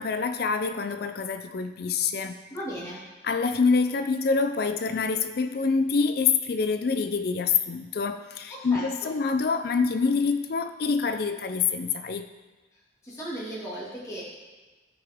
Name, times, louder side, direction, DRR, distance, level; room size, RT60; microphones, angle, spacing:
voice 1, 0.0-2.4 3.2-12.3, left 5 dB, 50° left, 9 dB, 0.4 m, -26 dB
voice 2, 2.5-3.0 8.5-9.1 13.0-14.2, equal, 15° left, -8 dB, 2.1 m, -36 dB
13.5 x 5.0 x 3.5 m, 1.3 s
head